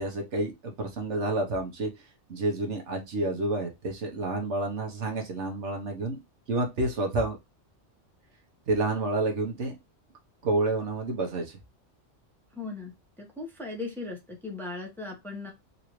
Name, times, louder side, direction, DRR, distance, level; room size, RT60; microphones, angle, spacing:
voice 1, 0.0-1.9 2.3-6.2 6.5-7.4 8.7-9.8 10.4-11.6, right 2 dB, 75° right, 2 dB, 1.3 m, -29 dB
voice 2, 12.5-15.5, left 3 dB, ahead, 0 dB, 1.0 m, -38 dB
4.0 x 2.7 x 3.0 m, 0.21 s
omnidirectional pair, 1.2 m